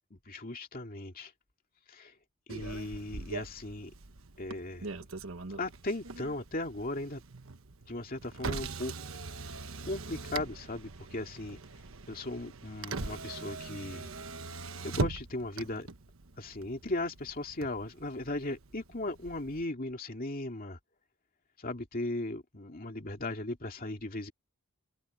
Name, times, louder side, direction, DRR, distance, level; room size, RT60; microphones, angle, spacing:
voice 1, 0.1-1.3 1.9-2.1 2.5-3.9 4.4-5.0 5.6-7.2 7.9-8.9 9.8-11.6 12.1-14.1 14.8-15.9 16.4-20.8 21.6-24.3, left 2 dB, 40° left, 2.4 m, -37 dB
Motor vehicle (road), 2.5-19.6, right 3 dB, 70° right, 1.2 m, -41 dB
head